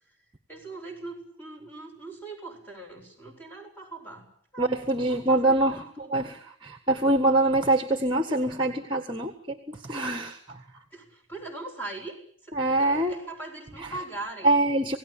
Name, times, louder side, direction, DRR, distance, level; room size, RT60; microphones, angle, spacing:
voice 1, 0.5-4.3 4.5-4.7 5.1-6.3 10.9-12.2 12.4-14.6, right 2 dB, 10° left, 2 dB, 7.4 m, -41 dB
voice 2, 4.6-10.4 12.6-13.2 14.4-15.0, right 2 dB, 25° right, 7 dB, 1.6 m, -24 dB
28.0 x 18.0 x 9.0 m, 0.62 s
head